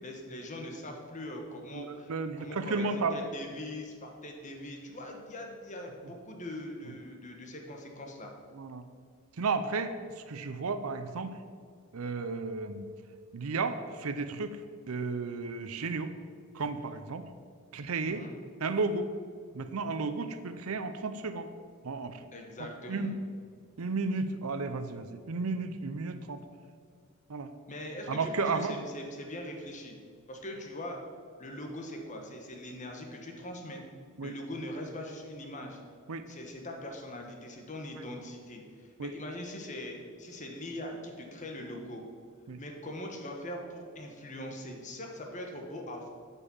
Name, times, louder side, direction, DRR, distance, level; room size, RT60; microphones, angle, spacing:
voice 1, 0.0-2.1 2.4-8.3 18.0-18.3 22.3-23.1 27.7-29.9 30.3-31.0 31.4-33.8 34.2-35.8 36.3-42.0 42.6-46.1, left 1 dB, 35° left, 2 dB, 1.2 m, -41 dB
voice 2, 1.7-3.2 8.5-8.8 9.4-11.3 11.9-12.9 13.3-14.6 14.9-16.1 16.5-17.2 17.7-18.2 18.6-19.1 19.5-21.5 21.8-22.2 22.9-23.2 23.8-26.4 27.3-27.5 28.1-28.8 34.2-34.3 36.1-36.2 38.0-38.1 39.0-39.1 42.5-42.6, right 4 dB, 75° right, 10 dB, 0.6 m, -33 dB
8.3 x 5.5 x 7.0 m, 2.1 s
head